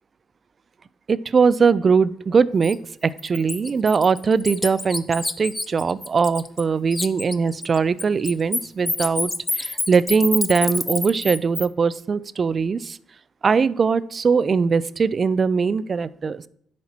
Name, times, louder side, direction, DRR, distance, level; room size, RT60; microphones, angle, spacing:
voice 1, 1.1-2.8 3.0-9.3 9.6-13.0 13.4-16.4, right 5 dB, 40° right, 18 dB, 0.3 m, -21 dB
Bird, 2.6-2.7 3.2-6.6 6.9-11.7, left 2 dB, 15° left, 0.6 m, -27 dB
10.5 x 4.3 x 4.3 m, 0.66 s
cardioid pair, 90°, 0 cm